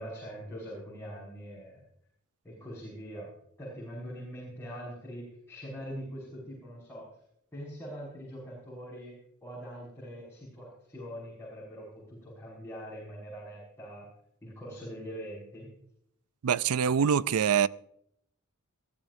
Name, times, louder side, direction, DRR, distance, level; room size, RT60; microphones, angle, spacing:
voice 1, 0.0-1.8 2.4-3.3 3.6-7.1 7.5-9.1 9.4-14.1 14.4-15.7, equal, 10° left, 5.7 m, -43 dB
voice 2, 16.4-17.7, right 7 dB, 80° right, 0.4 m, -24 dB
21.0 x 14.0 x 2.7 m
head